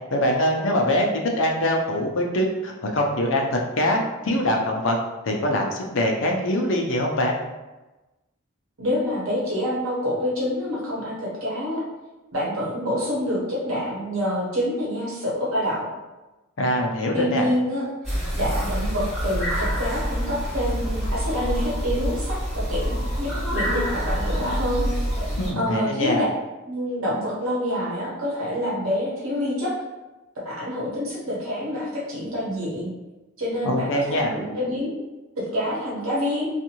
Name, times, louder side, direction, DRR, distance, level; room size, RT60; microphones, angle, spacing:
voice 1, 0.1-1.1 1.4-5.0 5.2-7.4 16.6-17.5 25.4-26.2 33.6-34.3, left 1 dB, 65° left, 1 dB, 0.5 m, -23 dB
voice 2, 8.8-11.8 12.3-15.9 17.1-17.8 18.3-22.3 22.7-24.9 25.6-26.3 26.6-29.7 30.4-32.9 33.4-35.0 35.5-36.5, equal, 85° right, -6 dB, 1.0 m, -27 dB
sound 1, 18.0-25.5, equal, ahead, 1.3 m, -26 dB
2.7 x 2.5 x 2.9 m, 1.1 s
head